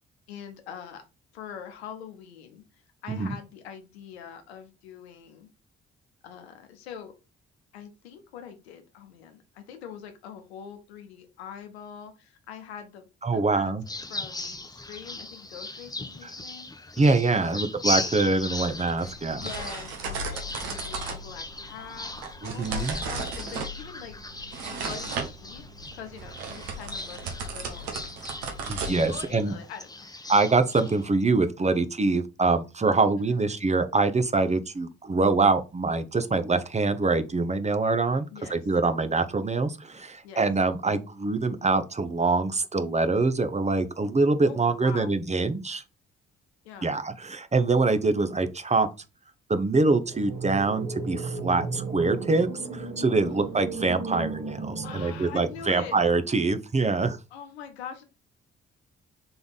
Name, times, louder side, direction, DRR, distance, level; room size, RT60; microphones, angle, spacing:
voice 1, 0.3-1.0 1.3-5.5 6.2-7.1 7.7-13.7 14.1-17.0 17.3-17.7 19.4-22.1 22.4-25.6 25.9-28.0 29.0-30.1 33.2-33.6 38.3-38.7 40.2-40.5 44.5-45.2 46.6-47.0 53.2-53.6 54.8-56.0 57.3-58.0, left 8 dB, 85° left, 0.7 m, -43 dB
voice 2, 13.2-13.8 17.0-19.5 22.4-23.0 28.7-29.5 30.3-45.8 46.8-48.9 49.5-57.2, right 3 dB, 20° right, 0.7 m, -24 dB
sound 1, 13.9-31.1, left 2 dB, 10° left, 0.8 m, -38 dB
sound 2, 18.4-29.5, right 3 dB, 80° right, 1.0 m, -36 dB
sound 3, 50.0-56.2, right 3 dB, 60° right, 1.4 m, -35 dB
3.9 x 3.4 x 3.9 m
hypercardioid pair, 40°, 31 cm